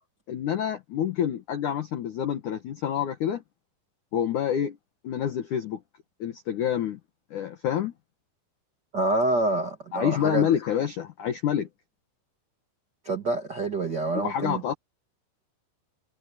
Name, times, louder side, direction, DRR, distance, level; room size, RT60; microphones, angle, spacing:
voice 1, 0.3-3.4 4.1-4.8 5.0-5.8 6.2-7.0 7.3-7.9 9.9-11.7 14.1-14.7, left 9 dB, 85° left, 1.7 m, -27 dB
voice 2, 8.9-10.5 13.0-14.6, right 2 dB, 75° right, 0.9 m, -27 dB
omnidirectional pair, 5.7 m